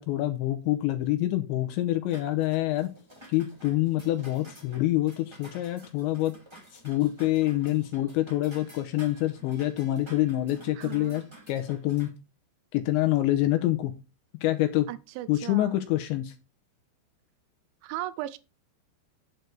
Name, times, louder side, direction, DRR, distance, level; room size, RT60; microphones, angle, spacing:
voice 1, 0.0-2.9 3.3-6.3 6.7-12.1 12.7-13.9 14.4-14.9 15.3-16.3, left 15 dB, 85° left, 2.8 m, -26 dB
sound 1, 2.1-12.1, right 1 dB, 10° right, 1.5 m, -52 dB
voice 2, 10.8-11.2 14.9-15.8 17.8-18.4, right 15 dB, 80° right, 2.9 m, -37 dB
9.0 x 8.0 x 3.4 m
omnidirectional pair, 5.5 m